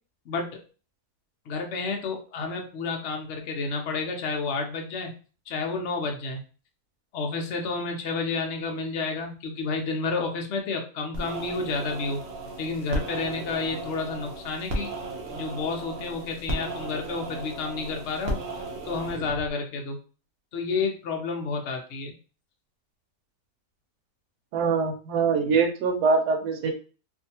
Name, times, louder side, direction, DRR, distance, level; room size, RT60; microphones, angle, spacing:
voice 1, 0.3-0.6 1.5-5.1 5.5-6.4 7.1-12.2 12.6-14.9 15.3-18.4 18.8-20.0 20.5-22.1, left 4 dB, 65° left, 2 dB, 0.7 m, -30 dB
sound 1, 11.1-19.5, right 2 dB, 55° right, 0.7 m, -35 dB
voice 2, 24.5-26.7, right 5 dB, 80° right, 3 dB, 1.2 m, -23 dB
2.7 x 2.5 x 2.7 m, 0.36 s
omnidirectional pair, 1.8 m